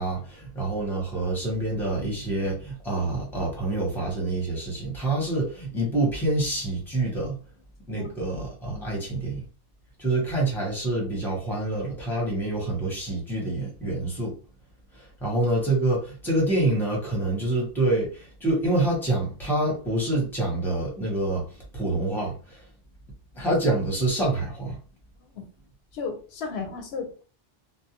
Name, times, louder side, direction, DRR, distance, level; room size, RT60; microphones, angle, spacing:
voice 1, 0.0-7.4 7.9-9.4 10.0-14.3 14.9-22.7 23.3-24.8, right 2 dB, ahead, -3 dB, 1.0 m, -27 dB
voice 2, 25.9-27.2, left 5 dB, 90° left, 5 dB, 0.9 m, -34 dB
2.6 x 2.0 x 2.9 m, 0.37 s
omnidirectional pair, 1.0 m